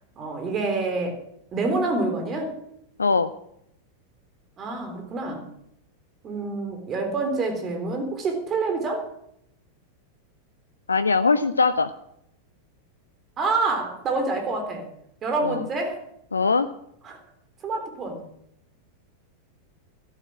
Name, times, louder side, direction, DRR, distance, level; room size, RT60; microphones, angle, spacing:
voice 1, 0.2-1.2 1.5-2.5 4.6-5.4 6.2-9.1 13.4-14.9 15.2-16.0 17.0-17.2 17.6-18.2, right 3 dB, 25° right, 5 dB, 3.6 m, -27 dB
voice 2, 3.0-3.3 10.9-11.9 15.4-15.6 16.3-16.7, left 4 dB, 75° left, 13 dB, 0.5 m, -21 dB
13.0 x 11.5 x 6.2 m, 0.76 s
figure-of-eight pair, 90°, 0 cm